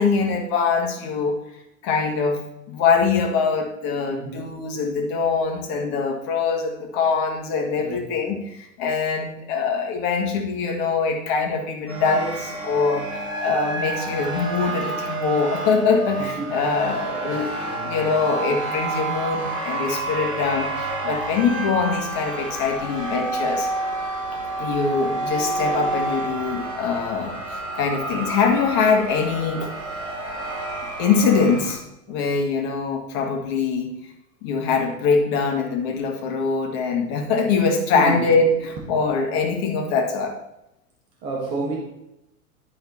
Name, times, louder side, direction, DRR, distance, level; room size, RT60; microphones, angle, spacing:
voice 1, 0.0-1.4 1.8-13.0 13.4-17.5 17.8-23.7 24.6-29.7 31.0-31.8 32.1-33.9 34.4-40.4, left 5 dB, 45° left, 3 dB, 1.7 m, -23 dB
voice 2, 4.1-4.6 7.8-8.0 16.2-16.7 17.1-18.6 32.1-32.4 37.9-38.3 41.2-41.8, right 3 dB, 45° right, -3 dB, 2.1 m, -32 dB
sound 1, 11.9-31.7, right 2 dB, 90° right, 2.7 m, -29 dB
11.5 x 4.3 x 4.1 m, 0.86 s
figure-of-eight pair, 90°, 43 cm